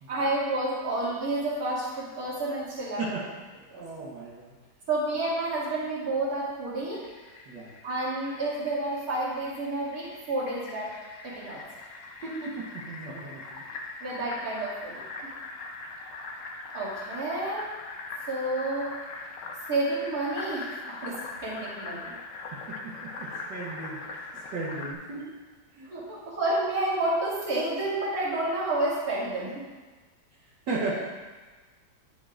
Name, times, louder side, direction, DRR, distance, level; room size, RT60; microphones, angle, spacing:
voice 1, 0.1-3.0 3.7-3.8 4.9-7.1 7.8-10.9 11.2-11.6 14.0-15.3 16.7-17.7 18.3-18.9 19.7-22.1 25.8-29.6, right 2 dB, 55° right, -8 dB, 2.6 m, -30 dB
voice 2, 3.7-4.6 7.5-7.7 12.2-13.6 22.5-25.2 25.7-25.9 30.7-31.0, right 3 dB, 85° right, -6 dB, 1.8 m, -36 dB
Fill (with liquid), 6.9-24.9, left 3 dB, 60° left, 0.9 m, -41 dB
10.5 x 6.6 x 2.5 m, 1.3 s
omnidirectional pair, 1.8 m